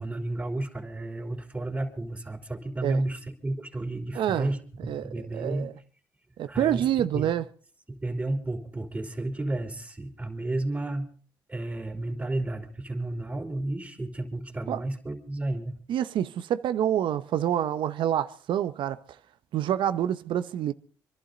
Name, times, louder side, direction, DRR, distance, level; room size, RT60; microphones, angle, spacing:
voice 1, 0.0-5.7 6.5-7.3 7.9-11.1 11.5-15.7, right 2 dB, 20° right, 3.6 m, -32 dB
voice 2, 4.1-4.5 4.9-5.7 6.4-7.4 14.7-14.8 15.9-19.0 19.5-20.7, right 10 dB, 75° right, 0.9 m, -27 dB
26.5 x 11.5 x 4.0 m
supercardioid pair, 65°, 9 cm